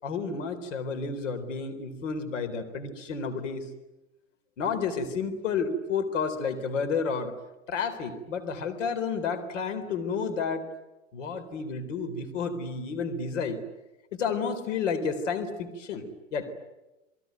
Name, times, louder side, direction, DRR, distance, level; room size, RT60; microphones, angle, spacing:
voice 1, 0.0-3.7 4.6-7.3 7.7-10.7 11.1-13.6 14.1-16.5, left 5 dB, 70° left, 8 dB, 3.9 m, -31 dB
27.5 x 22.5 x 9.4 m, 1.0 s
hypercardioid pair, 95°, 38 cm